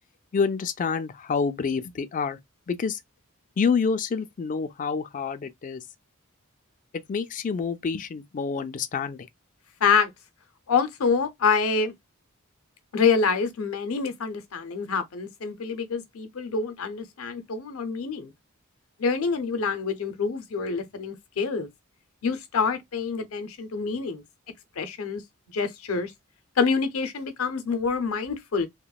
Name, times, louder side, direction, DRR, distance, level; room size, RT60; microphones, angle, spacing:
voice 1, 0.3-2.4 2.7-3.0 3.6-5.8 7.1-9.3, left 5 dB, 40° left, 0.3 m, -27 dB
voice 2, 10.7-11.9 12.9-18.3 19.0-21.7 22.2-24.2 24.8-25.2 25.5-26.1 26.6-28.7, left 5 dB, 80° left, 0.6 m, -26 dB
2.9 x 2.1 x 2.3 m
head